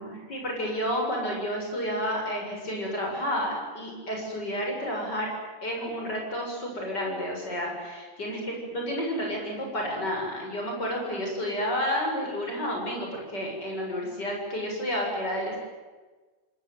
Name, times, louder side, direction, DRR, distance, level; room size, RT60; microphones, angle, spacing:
voice 1, 0.0-5.3 5.6-15.6, equal, 60° left, 0 dB, 7.8 m, -31 dB
28.5 x 18.5 x 9.5 m, 1.3 s
omnidirectional pair, 2.1 m